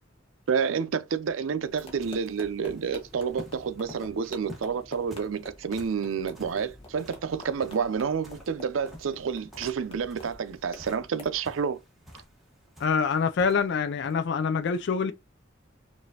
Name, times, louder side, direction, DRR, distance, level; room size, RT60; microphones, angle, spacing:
voice 1, 0.5-11.8, right 6 dB, 90° right, 0.5 m, -29 dB
sound 1, 1.5-14.2, left 1 dB, ahead, 1.3 m, -50 dB
sound 2, 1.7-11.4, left 2 dB, 30° left, 1.0 m, -48 dB
voice 2, 12.8-15.1, left 5 dB, 60° left, 0.4 m, -25 dB
4.9 x 2.6 x 2.7 m
head